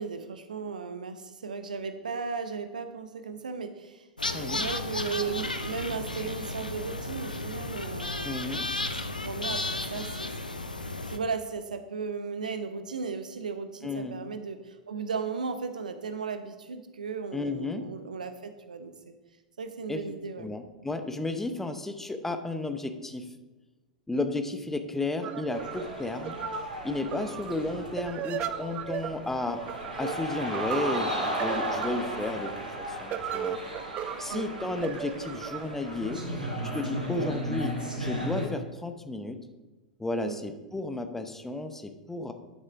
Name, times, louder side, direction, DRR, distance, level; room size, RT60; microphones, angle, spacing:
voice 1, 0.0-4.1 4.5-8.4 8.9-10.3 10.8-19.1 19.6-20.5 27.1-27.3 34.3-34.6 37.1-37.3 40.2-40.4, right 5 dB, 70° right, 9 dB, 0.8 m, -36 dB
sound 1, 4.2-11.2, left 2 dB, 85° left, 0.7 m, -33 dB
voice 2, 4.3-4.7 8.2-8.7 13.8-14.2 17.3-17.9 19.9-20.0 20.4-23.3 24.1-26.4 26.8-29.6 30.0-33.6 34.2-36.2 36.7-39.4 40.0-42.3, left 2 dB, 5° left, 8 dB, 0.9 m, -33 dB
sound 2, 25.2-36.8, right 10 dB, 30° right, 0.5 m, -37 dB
sound 3, 25.5-38.5, equal, 90° right, 2.3 m, -35 dB
11.5 x 6.5 x 3.7 m, 1.2 s
figure-of-eight pair, 95°, 4 cm